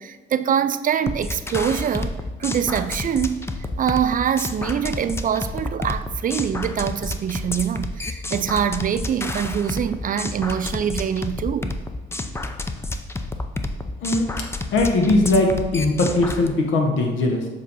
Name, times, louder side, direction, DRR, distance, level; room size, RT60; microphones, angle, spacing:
voice 1, 0.0-2.1 2.4-3.5 3.8-11.8, right 8 dB, 45° right, 0.4 m, -24 dB
sound 1, 1.1-16.5, left 2 dB, 15° left, 0.5 m, -30 dB
voice 2, 14.7-17.5, left 2 dB, 80° left, 1.2 m, -20 dB
7.3 x 2.8 x 5.5 m
cardioid pair, 90°, 20 cm